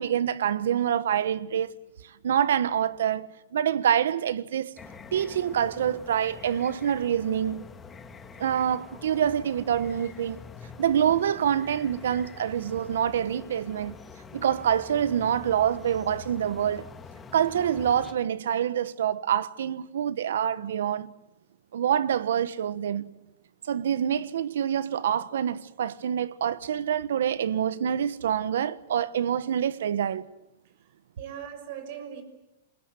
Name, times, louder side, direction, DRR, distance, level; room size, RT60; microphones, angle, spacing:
voice 1, 0.0-1.7 2.2-4.7 5.1-7.7 8.4-10.4 10.8-13.9 14.3-16.8 17.3-21.1 21.7-23.1 23.7-30.3, right 9 dB, 80° right, 1.3 m, -26 dB
sound 1, 4.8-18.1, left 5 dB, 15° left, 1.9 m, -45 dB
voice 2, 30.6-32.2, right 9 dB, 55° right, 6.1 m, -41 dB
28.5 x 21.5 x 9.2 m
supercardioid pair, 150°, 0 cm